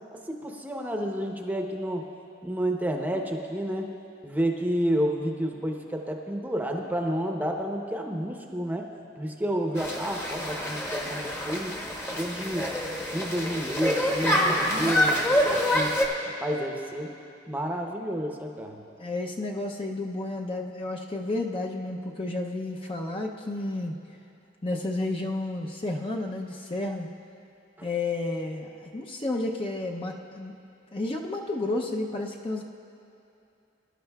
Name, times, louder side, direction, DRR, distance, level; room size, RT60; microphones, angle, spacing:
voice 1, 0.1-2.1 2.4-3.9 4.2-8.9 9.2-11.8 12.0-12.7 13.1-15.9 16.4-17.1 17.5-18.8 27.8-27.9, equal, 10° right, 2 dB, 0.7 m, -30 dB
sound 1, 9.8-16.1, equal, 15° left, 1.0 m, -26 dB
voice 2, 14.2-14.9 19.0-23.9 24.6-27.1 27.8-30.5 30.9-32.6, left 2 dB, 30° left, 1 dB, 0.6 m, -31 dB
21.5 x 11.5 x 2.3 m, 2.7 s
head